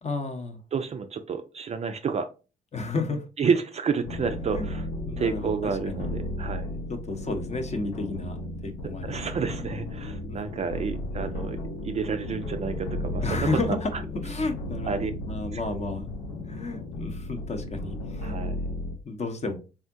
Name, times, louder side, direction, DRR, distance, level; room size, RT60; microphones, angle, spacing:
voice 1, 0.0-0.6 2.7-3.3 4.5-4.7 5.0-6.1 6.9-8.4 8.6-9.6 10.3-10.5 13.2-16.1 16.5-18.4 19.0-19.6, left 3 dB, 35° left, 5 dB, 0.7 m, -32 dB
voice 2, 0.7-2.3 3.4-4.9 5.2-6.8 9.0-13.8 14.8-15.1 15.5-15.6 18.2-18.7, right 5 dB, 30° right, 8 dB, 0.4 m, -30 dB
sound 1, 4.0-19.0, left 1 dB, 75° left, 0.6 m, -34 dB
sound 2, 9.2-14.4, left 2 dB, 5° right, 0.7 m, -49 dB
3.6 x 2.1 x 2.6 m, 0.32 s
figure-of-eight pair, 45°, 21 cm